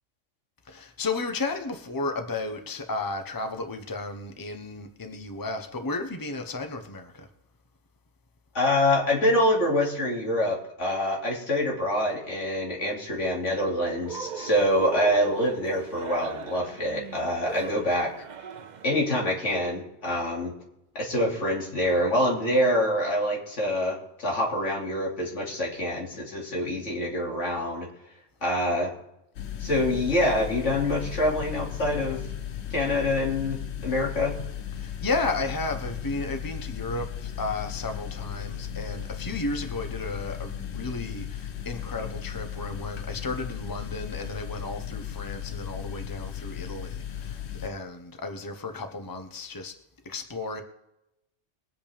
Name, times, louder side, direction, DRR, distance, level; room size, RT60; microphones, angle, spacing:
voice 1, 0.7-7.3 34.8-49.7 50.0-50.6, left 3 dB, 20° left, 6 dB, 1.0 m, -33 dB
voice 2, 8.5-18.1 18.8-20.5 20.9-27.9 28.4-29.0 29.6-32.3 32.7-34.4, left 1 dB, 85° left, -2 dB, 3.0 m, -26 dB
Cheering, 14.0-19.0, right 7 dB, 50° right, 0.7 m, -39 dB
sound 1, 29.3-47.7, left 9 dB, 65° left, 1.0 m, -36 dB
22.0 x 8.1 x 3.5 m, 0.86 s
omnidirectional pair, 1.2 m